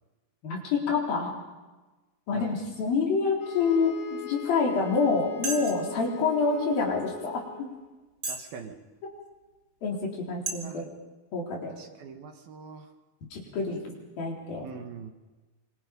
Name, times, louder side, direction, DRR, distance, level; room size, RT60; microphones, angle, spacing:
voice 1, 0.4-1.4 2.3-7.7 9.8-10.8 11.3-11.7 13.3-13.8 14.2-14.7, left 4 dB, 60° left, -1 dB, 5.6 m, -27 dB
sound 1, 3.4-7.8, left 13 dB, 85° left, 5.4 m, -41 dB
sound 2, 4.6-4.8 5.4-5.9 6.6-6.7 7.3-7.4 8.2-8.5 9.1-9.2 9.9-10.1 10.5-10.6, right 3 dB, 25° right, 2.5 m, -33 dB
voice 2, 8.3-8.8 10.6-10.9 11.7-12.9 14.6-15.1, right 6 dB, 70° right, 4 dB, 3.4 m, -43 dB
26.0 x 25.5 x 5.4 m, 1.2 s
omnidirectional pair, 4.7 m